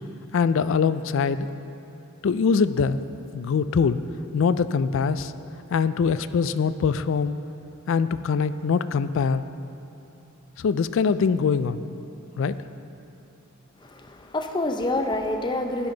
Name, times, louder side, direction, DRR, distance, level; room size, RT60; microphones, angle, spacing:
voice 1, 0.3-1.5 2.2-3.0 3.3-4.0 4.3-5.3 5.7-7.4 7.9-9.5 10.6-11.8 12.4-12.6, left 5 dB, 65° left, 13 dB, 0.4 m, -23 dB
voice 2, 13.8-15.9, left 2 dB, 20° left, 5 dB, 0.6 m, -27 dB
12.5 x 10.5 x 3.9 m, 2.9 s
head